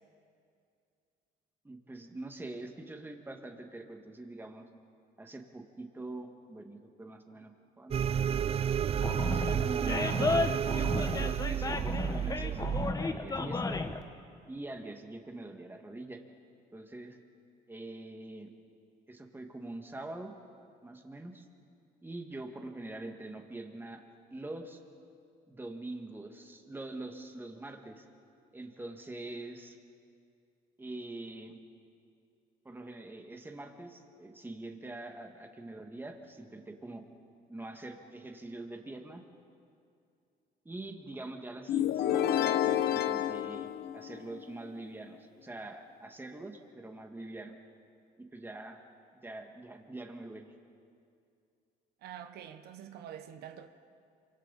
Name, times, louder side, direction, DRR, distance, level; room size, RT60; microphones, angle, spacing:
voice 1, 1.6-4.7 5.2-8.2 9.2-10.6 11.1-12.6 13.0-13.8 14.5-16.2 16.7-17.2 17.7-18.5 19.1-20.3 20.8-21.5 22.0-24.0 24.3-24.8 25.5-28.0 28.5-29.8 30.8-31.6 32.6-37.0 37.5-39.2 40.7-47.6 48.2-48.8 49.2-50.5, right 2 dB, 10° right, 2.0 m, -44 dB
sound 1, 7.9-12.9, right 9 dB, 35° right, 0.4 m, -31 dB
Animal, 9.0-14.0, left 3 dB, 20° left, 1.1 m, -33 dB
sound 2, 41.7-44.5, left 11 dB, 70° left, 0.9 m, -29 dB
voice 2, 52.0-53.7, right 9 dB, 75° right, 1.0 m, -46 dB
27.5 x 25.0 x 4.2 m
cardioid pair, 110°, 17 cm